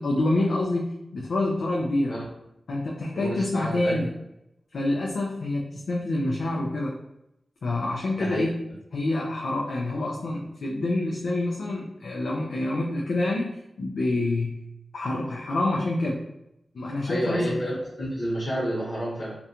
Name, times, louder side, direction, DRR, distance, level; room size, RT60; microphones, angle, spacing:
voice 1, 0.0-2.2 2.7-4.1 4.7-7.0 7.6-8.5 8.9-13.5 13.8-14.6 14.9-16.2 16.7-17.6, left 2 dB, 80° left, -2 dB, 0.3 m, -27 dB
voice 2, 3.1-4.0 8.2-8.4 17.1-19.4, equal, 55° left, -8 dB, 1.0 m, -29 dB
2.4 x 2.1 x 2.8 m, 0.85 s
wide cardioid pair, 145°, 0 cm